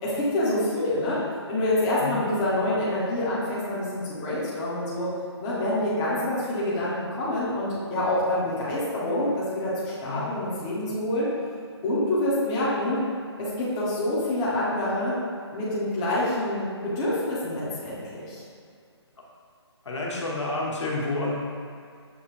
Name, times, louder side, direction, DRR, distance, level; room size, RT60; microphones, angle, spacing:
voice 1, 0.0-1.2 1.5-5.1 5.4-11.3 11.8-13.0 13.4-15.2 15.5-18.4, left 1 dB, 10° left, -9 dB, 0.4 m, -26 dB
voice 2, 19.8-21.3, left 2 dB, 80° left, -4 dB, 1.1 m, -29 dB
6.5 x 2.6 x 2.9 m, 2.3 s
hypercardioid pair, 165°, 15 cm